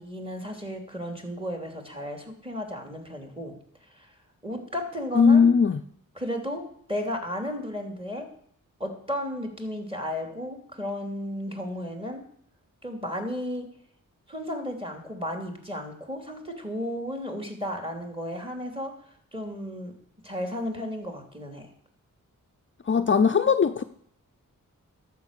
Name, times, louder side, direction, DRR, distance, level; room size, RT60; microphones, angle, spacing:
voice 1, 0.0-3.6 3.9-4.1 4.4-5.5 6.2-6.6 6.9-8.3 8.8-12.2 12.8-13.7 14.3-18.9 19.3-19.9 20.2-21.7, equal, 15° right, 4 dB, 2.9 m, -34 dB
voice 2, 5.2-5.8 22.9-23.8, left 6 dB, 35° left, 8 dB, 0.5 m, -19 dB
11.5 x 7.5 x 6.8 m, 0.67 s
cardioid pair, 65°, 33 cm